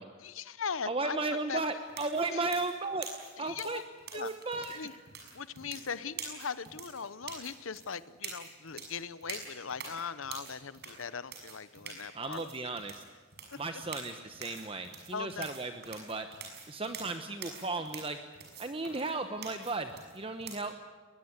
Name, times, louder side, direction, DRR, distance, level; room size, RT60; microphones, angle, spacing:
voice 1, 0.2-1.6 2.3-2.5 3.4-3.8 4.1-4.3 4.7-4.9 5.3-12.7 15.1-15.5, left 6 dB, 80° left, 16 dB, 0.9 m, -39 dB
voice 2, 0.9-3.1 3.4-3.8 4.1-4.8 12.1-13.0 13.6-16.3 16.7-18.2 18.6-20.7, right 3 dB, 25° right, 8 dB, 1.1 m, -35 dB
sound 1, 1.9-20.6, right 5 dB, 50° right, 6.4 m, -46 dB
21.5 x 21.0 x 9.7 m, 1.4 s
head